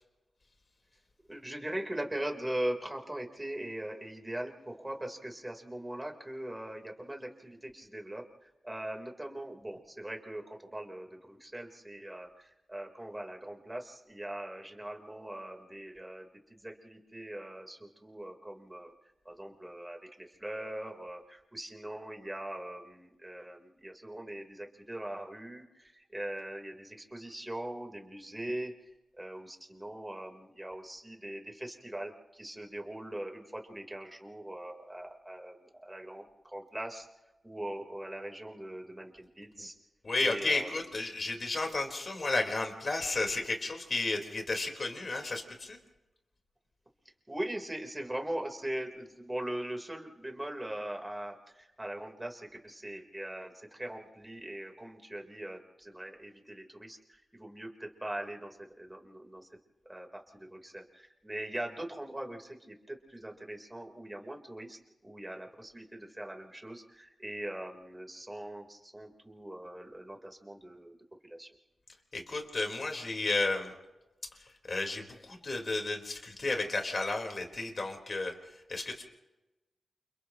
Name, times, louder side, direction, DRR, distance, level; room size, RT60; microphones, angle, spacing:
voice 1, 1.3-18.9 19.3-28.7 29.2-37.1 37.4-39.7 40.2-40.8 47.3-59.5 59.9-71.0 71.2-71.5, right 1 dB, 15° right, 2 dB, 3.7 m, -41 dB
voice 2, 40.0-45.8 72.1-73.7 74.4-79.0, left 2 dB, 40° left, 2 dB, 4.1 m, -33 dB
29.5 x 29.0 x 3.0 m, 1.0 s
wide cardioid pair, 95°, 0 cm